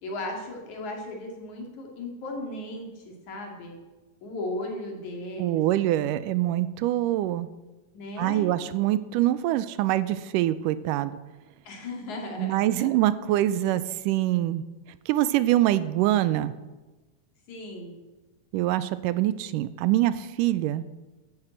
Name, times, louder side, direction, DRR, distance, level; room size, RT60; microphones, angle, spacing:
voice 1, 0.0-3.8 4.2-5.8 7.9-8.5 11.6-12.9 17.5-18.0, left 1 dB, 60° left, 1 dB, 3.8 m, -36 dB
voice 2, 5.4-7.5 8.2-11.2 12.4-14.6 15.1-16.5 18.5-20.9, right 14 dB, 80° right, 15 dB, 2.1 m, -24 dB
11.5 x 9.7 x 8.0 m, 1.2 s
omnidirectional pair, 3.8 m